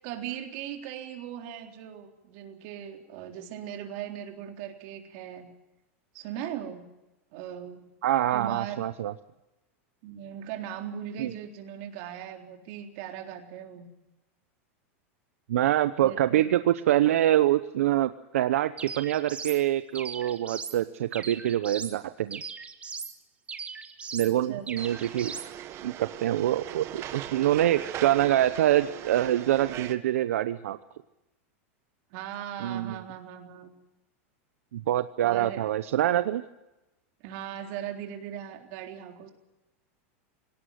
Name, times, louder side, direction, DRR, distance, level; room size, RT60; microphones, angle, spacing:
voice 1, 0.0-5.5 6.1-6.9 7.3-7.9 8.3-8.9 10.0-13.9 16.0-16.5 24.2-24.6 32.1-33.7 35.2-35.6 37.2-39.3, right 10 dB, 55° right, 3 dB, 3.7 m, -39 dB
voice 2, 8.0-9.1 11.2-11.3 15.5-22.4 24.1-25.3 25.8-30.8 32.6-33.0 34.7-36.4, right 12 dB, 85° right, 12 dB, 0.8 m, -25 dB
sound 1, 18.8-19.6 19.9-20.8 21.1-22.0 22.3-23.1 23.5-24.3 24.7-25.5, right 5 dB, 15° right, 1.9 m, -39 dB
sound 2, 24.8-29.9, right 11 dB, 40° right, 1.6 m, -39 dB
20.0 x 18.0 x 9.3 m, 0.97 s
supercardioid pair, 135°, 7 cm